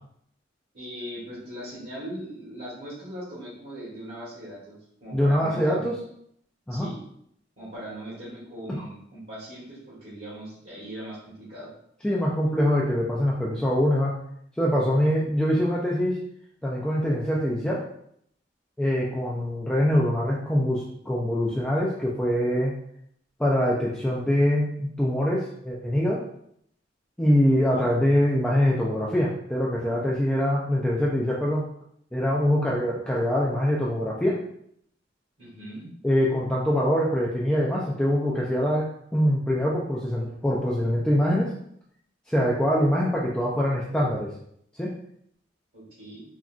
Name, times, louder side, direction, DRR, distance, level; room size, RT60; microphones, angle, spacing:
voice 1, 0.7-5.9 6.7-7.0 7.6-11.7 27.5-27.8 35.4-35.9 45.7-46.2, right 1 dB, 60° right, -8 dB, 1.1 m, -40 dB
voice 2, 5.1-5.9 6.7-6.9 8.7-8.8 12.0-14.1 14.6-16.2 16.6-17.9 18.8-22.7 23.4-26.2 27.2-31.6 32.1-34.4 36.0-41.5 42.3-44.3 44.8-44.9, equal, 5° left, -5 dB, 0.3 m, -24 dB
3.7 x 2.2 x 2.4 m, 0.70 s
head